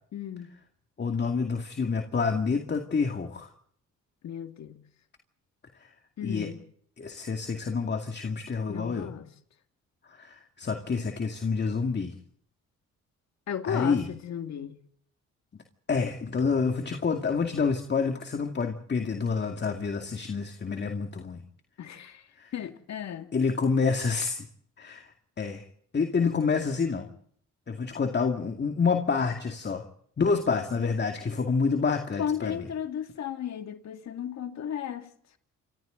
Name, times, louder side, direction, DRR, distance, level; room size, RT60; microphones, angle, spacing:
voice 1, 0.1-0.5 4.2-4.8 6.2-6.6 8.7-9.3 13.5-14.8 21.8-22.3 22.5-23.3 32.2-35.1, left 9 dB, 60° left, 2.3 m, -34 dB
voice 2, 1.0-3.5 6.2-6.5 7.0-9.1 10.1-12.2 13.7-14.1 15.9-21.4 22.4-22.5 23.3-24.4 24.8-25.1 25.4-25.6 25.9-27.1 27.7-29.8 30.2-32.6, left 5 dB, 35° left, 2.3 m, -28 dB
29.0 x 25.0 x 4.0 m
cardioid pair, 90°, 30 cm